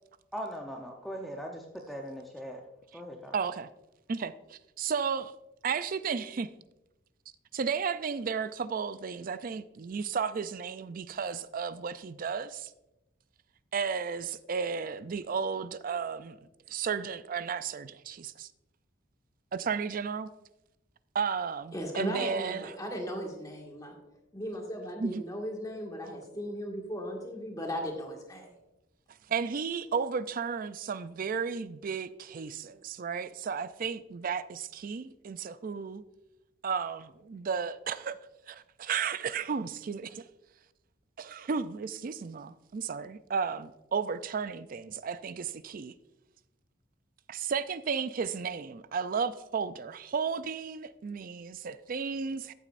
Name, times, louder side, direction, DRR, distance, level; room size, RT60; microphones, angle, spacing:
voice 1, 0.3-2.6 2.9-3.3, equal, ahead, 0.7 m, -40 dB
voice 2, 3.3-3.7 4.1-5.3 5.6-6.5 7.5-12.7 13.7-16.4 16.7-18.5 19.5-20.3 21.1-22.7 25.0-25.2 29.3-36.0 36.6-38.2 38.5-40.3 41.2-45.9 47.3-52.5, right 6 dB, 45° right, 0.4 m, -33 dB
voice 3, 21.7-23.9 24.3-28.5, equal, 20° left, 1.8 m, -37 dB
14.0 x 8.2 x 2.5 m
head